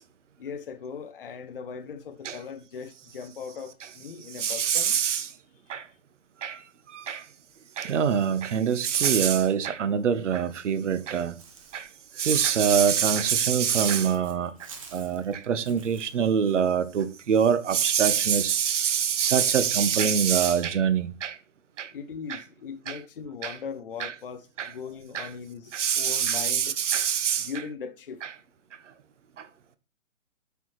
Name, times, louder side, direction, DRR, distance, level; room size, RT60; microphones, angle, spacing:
voice 1, 0.4-5.0 5.7-5.8 21.9-26.8 27.4-28.2, left 6 dB, 45° left, 0.7 m, -39 dB
voice 2, 4.4-5.3 5.7-5.8 6.4-6.6 6.9-7.2 7.8-11.3 11.7-11.9 12.2-14.5 14.9-21.3 21.8-21.9 22.3-22.4 22.9-23.0 23.4-23.6 24.0-24.1 24.6-24.7 25.1-25.3 25.7-27.5, right 7 dB, 70° right, 0.9 m, -24 dB
Walk footsteps / Bird, 11.4-16.1, right 5 dB, 25° right, 0.8 m, -47 dB
8.1 x 4.5 x 3.1 m
hypercardioid pair, 170°, 38 cm